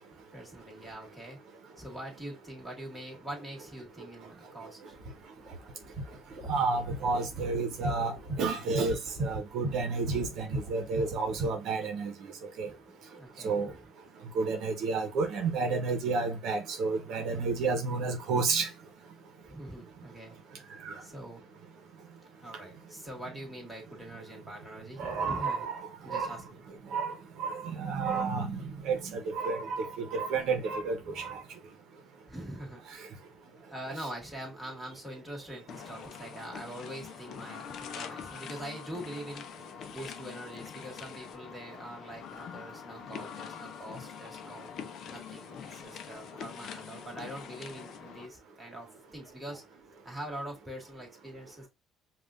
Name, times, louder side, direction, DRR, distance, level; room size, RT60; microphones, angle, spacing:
voice 1, 0.3-1.4 1.8-5.0 6.9-7.2 10.0-10.4 12.6-13.8 17.3-17.6 19.5-20.3 21.0-21.4 22.4-25.6 26.0-26.6 31.0-31.1 32.3-33.0 33.6-39.4 39.9-44.7 45.1-49.6 50.0-51.7, right 1 dB, 5° right, 1.8 m, -44 dB
sound 1, 4.9-11.5, right 1 dB, 25° right, 1.8 m, -37 dB
voice 2, 6.5-8.1 8.4-12.3 12.6-12.7 13.4-13.7 14.3-18.7 20.8-21.0 25.0-25.8 26.1-26.4 26.9-27.1 27.4-31.4, right 4 dB, 65° right, 0.9 m, -31 dB
sound 2, 35.7-48.3, left 8 dB, 55° left, 0.5 m, -44 dB
5.4 x 2.4 x 2.5 m
cardioid pair, 135°, 0 cm